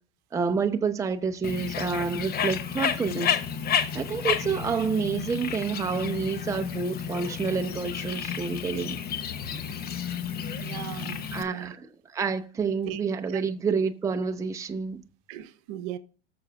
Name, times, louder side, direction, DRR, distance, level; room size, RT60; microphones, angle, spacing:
voice 1, 0.3-3.4 3.9-9.0 11.3-11.8 12.1-15.0, right 5 dB, 10° right, 0.7 m, -28 dB
Bird, 1.4-11.4, left 8 dB, 30° left, 1.0 m, -31 dB
voice 2, 10.6-11.7 12.9-13.0 13.3-13.4 15.3-16.0, right 12 dB, 55° right, 0.9 m, -38 dB
19.0 x 6.8 x 2.4 m
hypercardioid pair, 110°, 30 cm